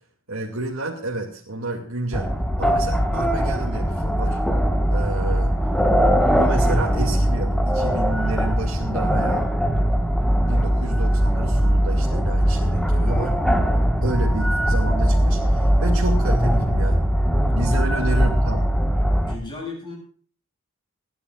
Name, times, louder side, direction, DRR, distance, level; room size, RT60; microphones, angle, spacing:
voice 1, 0.3-2.3 2.6-4.4 4.9-5.5 6.4-9.5 10.5-13.4 14.0-17.0 17.6-18.6, right 2 dB, 85° right, -1 dB, 2.4 m, -30 dB
sound 1, 2.1-19.4, equal, ahead, 1.5 m, -20 dB
voice 2, 17.7-18.1 19.3-19.9, left 3 dB, 20° left, 0 dB, 7.7 m, -35 dB
29.5 x 11.0 x 2.5 m, 0.43 s
head